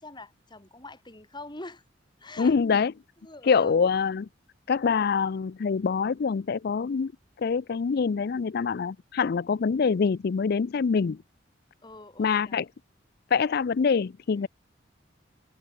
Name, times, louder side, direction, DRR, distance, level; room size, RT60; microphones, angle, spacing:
voice 1, 0.0-1.8 2.2-2.6 3.2-3.8 11.8-12.6 14.3-14.5, left 2 dB, 25° left, 4.5 m, -44 dB
voice 2, 2.4-2.9 3.4-4.3 4.7-7.1 7.4-11.2 12.2-12.7 13.3-14.5, left 5 dB, 55° left, 0.4 m, -25 dB
open air
head